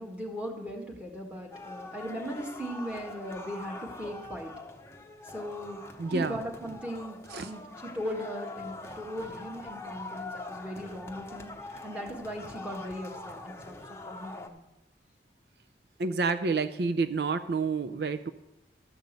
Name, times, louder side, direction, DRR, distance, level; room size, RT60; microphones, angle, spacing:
voice 1, 0.0-4.5 5.2-5.8 6.1-11.5 11.8-14.6, equal, 5° right, 0 dB, 1.6 m, -38 dB
sound 1, 1.5-14.5, left 2 dB, 15° left, 0.8 m, -43 dB
voice 2, 6.0-6.4 7.3-7.5 16.0-18.3, right 4 dB, 65° right, 10 dB, 0.4 m, -29 dB
13.0 x 5.3 x 8.1 m, 0.93 s
head